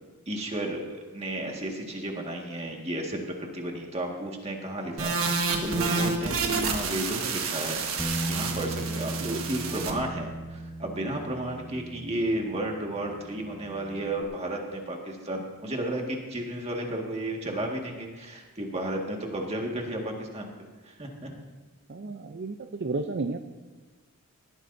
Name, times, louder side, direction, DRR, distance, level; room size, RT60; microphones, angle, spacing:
voice 1, 0.3-0.8 1.1-7.8 8.3-20.5 20.9-21.3, right 1 dB, 30° right, 1 dB, 1.8 m, -33 dB
sound 1, 5.0-9.9, right 4 dB, 65° right, 1.5 m, -29 dB
Bass guitar, 8.0-14.2, right 1 dB, ahead, 1.3 m, -37 dB
voice 2, 9.2-9.5 21.9-23.4, right 3 dB, 50° right, 6 dB, 0.5 m, -33 dB
18.5 x 14.0 x 2.7 m, 1.3 s
head